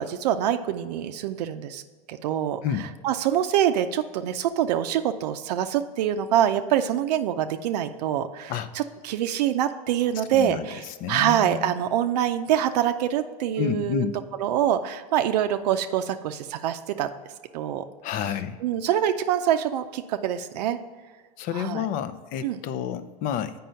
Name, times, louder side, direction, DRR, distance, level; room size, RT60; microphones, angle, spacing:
voice 1, 0.0-1.8 2.1-14.0 14.4-17.1 17.5-17.8 18.6-20.8 21.5-21.9 22.4-22.6, right 10 dB, 75° right, 8 dB, 0.5 m, -25 dB
voice 2, 10.3-10.7 11.0-11.7 13.6-14.2 18.0-18.6 21.4-23.5, left 9 dB, 40° left, 11 dB, 0.6 m, -29 dB
7.5 x 5.4 x 5.6 m, 1.4 s
supercardioid pair, 130°, 21 cm